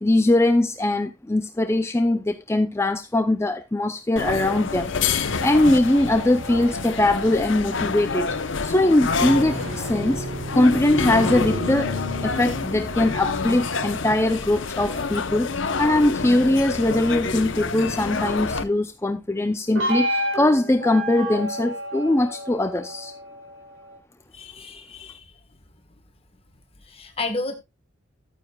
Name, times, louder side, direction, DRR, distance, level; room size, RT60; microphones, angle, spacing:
voice 1, 0.0-4.9 5.4-8.3 8.6-10.3 10.5-12.0 12.2-23.1, left 1 dB, 15° left, 0.5 m, -21 dB
sound 1, 4.2-18.6, left 4 dB, 70° left, 0.9 m, -28 dB
sound 2, 5.4-8.0 9.1-15.9 19.8-24.0, equal, 70° right, 4.4 m, -32 dB
voice 2, 24.3-25.2 26.9-27.6, left 3 dB, 30° left, 1.4 m, -31 dB
13.5 x 9.3 x 2.3 m
head